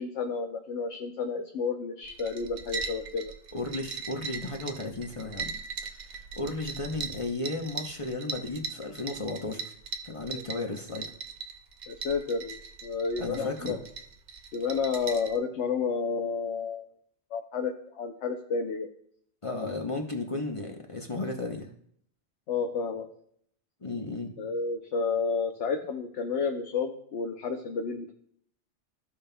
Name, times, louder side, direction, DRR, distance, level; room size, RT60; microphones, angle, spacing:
voice 1, 0.0-3.3 11.9-13.8 14.5-16.9 17.3-18.9 22.5-23.1 24.4-28.1, left 5 dB, 85° left, 3 dB, 1.0 m, -31 dB
sound 1, 2.0-15.4, right 5 dB, 50° right, 0.7 m, -40 dB
voice 2, 3.5-5.5 6.0-9.6 10.0-11.1 13.2-13.8 19.4-21.7 23.8-24.3, left 2 dB, 30° left, 2 dB, 0.8 m, -34 dB
14.5 x 5.3 x 2.2 m, 0.66 s
omnidirectional pair, 1.2 m